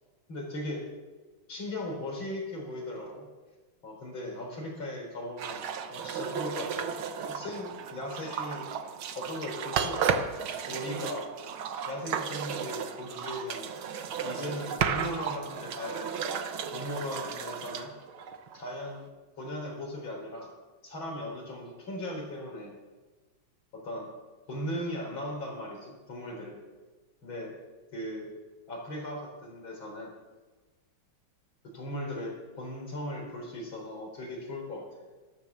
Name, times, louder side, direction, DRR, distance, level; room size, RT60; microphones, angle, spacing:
voice 1, 0.3-0.8 1.5-3.3 3.8-6.9 7.3-8.7 9.1-10.3 10.7-11.3 11.9-13.7 14.2-16.3 16.7-17.9 18.5-19.1 19.4-20.5 20.8-22.7 23.7-24.1 24.5-26.6 27.2-27.6 27.9-28.3 28.7-30.1 31.7-34.8, left 1 dB, 70° left, -1 dB, 5.2 m, -38 dB
sound 1, 5.4-18.9, right 7 dB, 80° right, 1.8 m, -34 dB
13.0 x 12.5 x 7.2 m, 1.3 s
omnidirectional pair, 2.2 m